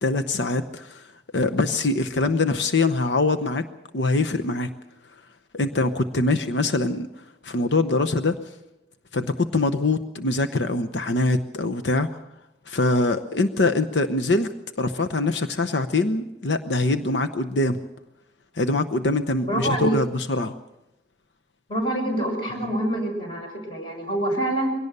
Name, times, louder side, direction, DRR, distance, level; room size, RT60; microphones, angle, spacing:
voice 1, 0.0-1.1 1.3-3.7 3.9-4.7 5.5-7.1 7.4-8.5 9.1-12.2 12.7-14.5 14.8-17.8 18.6-20.6, left 2 dB, 75° left, 7 dB, 0.9 m, -23 dB
voice 2, 19.5-19.9 21.7-24.7, right 1 dB, 25° left, 2 dB, 6.5 m, -26 dB
22.5 x 17.5 x 6.8 m, 0.93 s
head